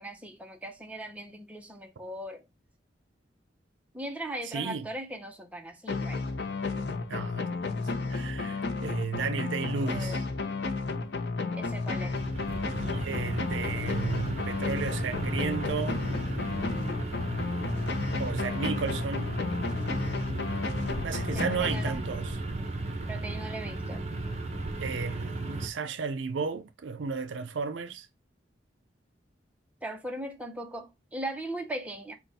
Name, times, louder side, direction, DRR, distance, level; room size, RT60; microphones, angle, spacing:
voice 1, 0.0-2.4 3.9-6.2 9.8-10.3 11.5-12.2 21.3-22.0 23.1-24.1 29.8-32.2, right 1 dB, 10° right, 0.8 m, -39 dB
voice 2, 4.4-4.9 7.1-7.5 8.1-10.2 12.9-16.1 18.2-19.3 21.0-22.4 24.8-28.1, right 5 dB, 75° right, 0.5 m, -33 dB
sound 1, 5.9-22.4, left 3 dB, 65° left, 0.7 m, -32 dB
sound 2, 11.5-25.7, right 2 dB, 35° right, 1.0 m, -35 dB
5.5 x 2.4 x 4.1 m
head